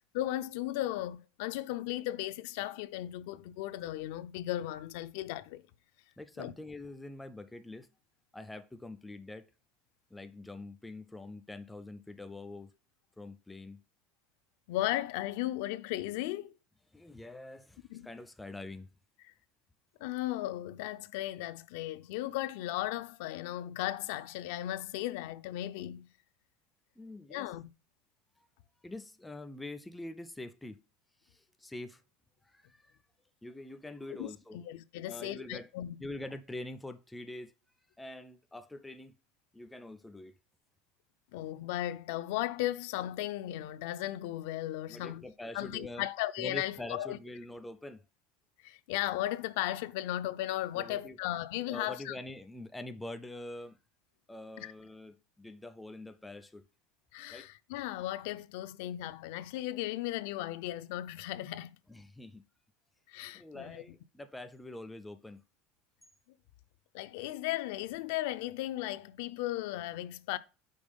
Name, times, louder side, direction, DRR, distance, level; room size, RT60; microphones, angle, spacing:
voice 1, 0.1-5.6 6.4-6.5 14.7-16.5 17.9-18.1 20.0-26.1 27.3-27.7 34.2-36.0 41.3-45.2 45.5-47.2 48.6-52.2 54.6-54.7 57.1-61.7 63.1-63.8 66.9-70.4, left 15 dB, 70° left, 0.4 m, -36 dB
voice 2, 6.2-7.9 8.3-9.5 10.1-12.7 13.2-13.8 16.9-18.9 27.0-27.5 28.8-30.8 31.2-32.0 32.4-32.9 33.4-34.6 35.1-35.7 36.0-37.5 38.0-39.2 39.5-40.3 44.9-46.1 46.4-48.1 50.7-51.2 51.7-53.8 54.3-56.6 57.3-57.5 61.9-62.4 63.3-65.4, left 2 dB, 5° left, 0.3 m, -45 dB
5.3 x 4.0 x 5.1 m
cardioid pair, 170°, 0 cm